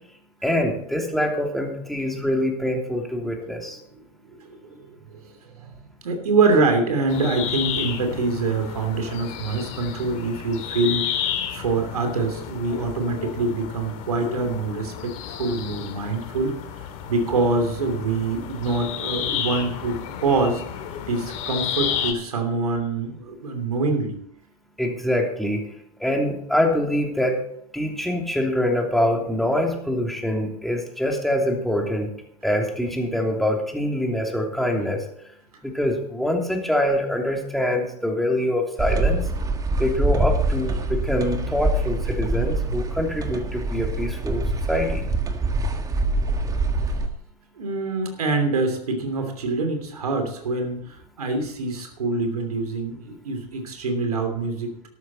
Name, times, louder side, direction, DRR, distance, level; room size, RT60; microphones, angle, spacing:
voice 1, 0.4-3.8 24.8-25.7 26.0-27.4 27.7-32.1 32.4-35.1 35.6-39.2 39.8-44.4 44.7-45.0, left 1 dB, ahead, 1 dB, 2.9 m, -24 dB
voice 2, 4.4-5.2 5.5-5.7 6.0-16.5 17.1-20.6 21.1-24.2 47.6-54.9, right 3 dB, 75° right, 5 dB, 3.1 m, -25 dB
sound 1, 7.1-22.1, left 9 dB, 40° left, 2.5 m, -32 dB
sound 2, 38.8-47.1, right 2 dB, 20° right, 1.6 m, -25 dB
13.0 x 12.5 x 4.3 m, 0.70 s
figure-of-eight pair, 90°, 19 cm